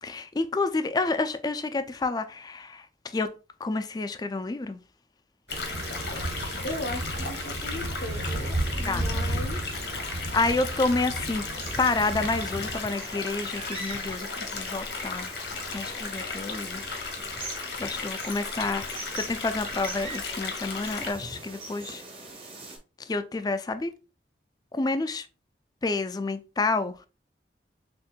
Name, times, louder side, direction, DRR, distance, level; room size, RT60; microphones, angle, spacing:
voice 1, 0.0-3.3 3.6-4.8 8.9-9.4 10.3-11.4 11.8-15.3 15.7-16.8 17.5-22.0 23.0-23.9 24.7-25.3 25.8-27.1, left 3 dB, 25° left, 0.3 m, -29 dB
sound 1, 5.5-21.1, left 4 dB, 75° left, 1.0 m, -35 dB
sound 2, 5.5-12.8, right 1 dB, 70° right, 0.8 m, -33 dB
voice 2, 6.6-9.6, left 1 dB, 60° left, 0.7 m, -37 dB
sound 3, 11.6-22.8, right 2 dB, 35° right, 1.1 m, -42 dB
6.3 x 2.5 x 2.2 m
head